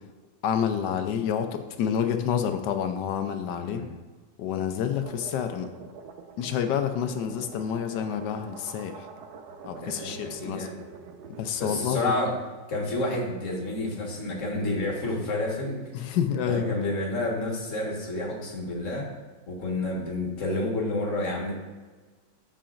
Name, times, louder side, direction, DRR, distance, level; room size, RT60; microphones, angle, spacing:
voice 1, 0.4-3.8 4.4-5.7 6.4-9.1 9.6-10.7 11.4-12.1 15.9-16.7, left 8 dB, 75° left, 7 dB, 1.2 m, -28 dB
voice 2, 3.6-3.9 9.7-10.7 11.6-12.3 12.7-15.8 16.5-19.1 19.5-21.5, left 2 dB, 45° left, -1 dB, 1.8 m, -29 dB
sound 1, 4.8-11.5, right 5 dB, 70° right, 1.1 m, -45 dB
14.0 x 5.0 x 2.5 m, 1.4 s
omnidirectional pair, 2.0 m